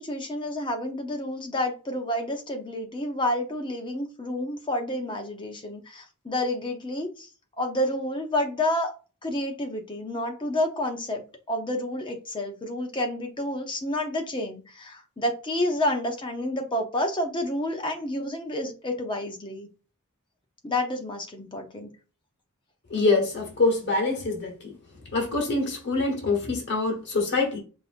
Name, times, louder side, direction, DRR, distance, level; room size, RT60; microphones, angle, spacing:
voice 1, 0.0-7.3 7.6-8.9 9.2-19.7 20.6-21.9, left 1 dB, 20° left, 0.7 m, -29 dB
voice 2, 22.9-24.7 25.1-27.6, left 3 dB, 50° left, 1.2 m, -25 dB
5.3 x 2.6 x 2.5 m
head